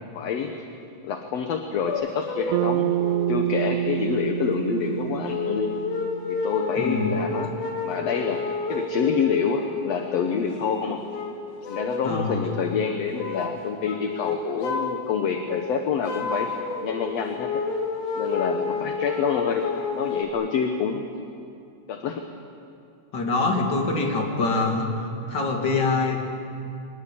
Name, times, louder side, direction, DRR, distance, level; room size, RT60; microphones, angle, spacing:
voice 1, 0.1-0.5 1.0-2.9 3.3-5.7 6.3-7.5 7.8-8.4 8.7-11.0 11.7-16.5 16.8-17.6 18.1-19.7 19.9-21.1 21.9-22.2, left 6 dB, 60° left, 5 dB, 2.1 m, -27 dB
sound 1, 1.9-2.7 3.0-3.4 4.2-4.3 5.3-10.5 10.9-12.2 12.5-12.8 13.1-13.6 13.9-15.0 15.3-20.3, left 4 dB, 80° left, 3.3 m, -30 dB
Bass guitar, 2.5-6.9, right 12 dB, 80° right, 2.2 m, -27 dB
voice 2, 6.8-7.1 12.0-12.4 23.1-26.2, left 3 dB, 35° left, 1 dB, 3.1 m, -24 dB
24.5 x 20.0 x 8.7 m, 2.5 s
omnidirectional pair, 3.5 m